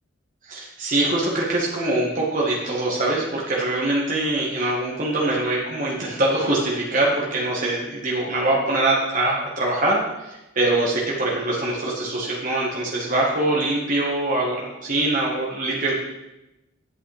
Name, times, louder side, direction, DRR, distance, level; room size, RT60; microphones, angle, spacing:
voice 1, 0.4-16.0, right 2 dB, 40° right, -4 dB, 1.5 m, -23 dB
10.5 x 8.4 x 3.4 m, 0.94 s
head